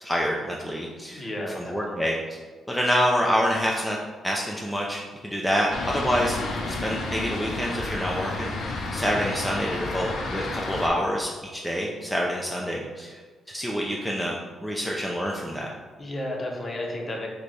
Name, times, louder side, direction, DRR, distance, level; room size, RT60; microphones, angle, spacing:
voice 1, 0.0-1.3 1.6-2.4 2.7-4.0 4.2-6.4 6.7-13.2 13.5-15.7, equal, ahead, -3 dB, 0.4 m, -27 dB
voice 2, 1.1-2.0 16.0-17.3, left 1 dB, 30° left, 0 dB, 0.7 m, -32 dB
Fixed-wing aircraft airplane, 5.7-10.9, left 2 dB, 70° left, 0.5 m, -31 dB
3.2 x 2.2 x 3.9 m, 1.4 s
cardioid pair, 85°, 0 cm